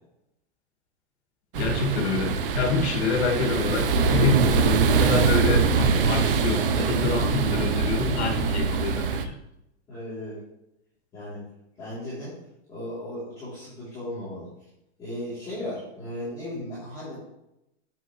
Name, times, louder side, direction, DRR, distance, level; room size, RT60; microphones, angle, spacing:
voice 1, 1.5-9.3, left 5 dB, 75° left, 1 dB, 2.5 m, -27 dB
sound 1, 1.5-9.2, right 5 dB, 55° right, 0.9 m, -23 dB
voice 2, 9.9-10.4 11.1-11.4 11.8-12.4 12.7-14.5 15.0-17.2, left 1 dB, 10° left, -14 dB, 3.4 m, -36 dB
9.7 x 7.7 x 3.3 m, 0.83 s
supercardioid pair, 180°, 34 cm